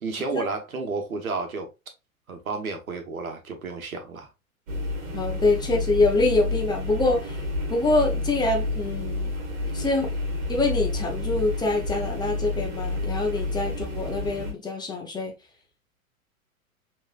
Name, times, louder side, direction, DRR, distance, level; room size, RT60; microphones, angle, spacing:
voice 1, 0.0-1.7 2.3-4.3, right 3 dB, 75° right, 1.3 m, -31 dB
sound 1, 4.7-14.5, left 2 dB, 55° right, 1.9 m, -30 dB
voice 2, 5.1-7.4 7.7-9.3 9.7-10.1 10.5-15.3, left 2 dB, 10° left, 0.9 m, -25 dB
5.2 x 3.2 x 2.4 m
figure-of-eight pair, 105°, 43 cm